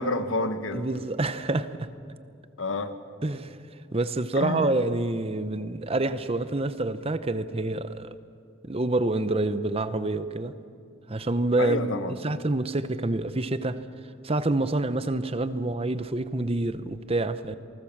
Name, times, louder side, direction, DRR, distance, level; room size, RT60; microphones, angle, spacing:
voice 1, 0.0-0.9 2.6-2.9 4.3-4.7 11.6-12.2, left 2 dB, 90° left, 9 dB, 1.5 m, -29 dB
voice 2, 0.7-1.9 3.2-3.6 3.9-8.1 8.6-10.6 11.1-13.8 14.2-17.6, right 2 dB, 30° right, 13 dB, 0.8 m, -27 dB
27.5 x 19.5 x 7.3 m, 2.4 s
head